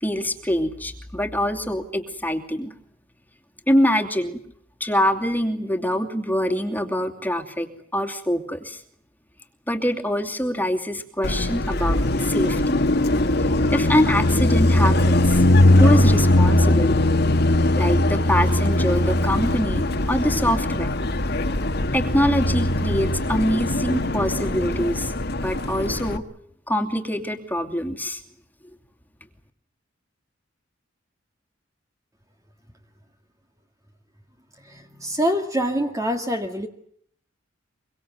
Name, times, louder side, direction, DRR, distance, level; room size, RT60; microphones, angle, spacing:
voice 1, 0.0-2.7 3.7-4.4 4.8-7.7 7.9-8.8 9.7-12.8 13.7-15.4 15.8-16.9 17.8-20.9 21.9-26.2 26.7-28.2, equal, 10° left, 6 dB, 2.8 m, -24 dB
Car passing by, 11.2-26.2, left 1 dB, 55° left, 1.9 m, -20 dB
voice 2, 34.7-36.7, equal, 15° right, 4 dB, 2.0 m, -25 dB
25.0 x 24.0 x 8.1 m, 0.65 s
head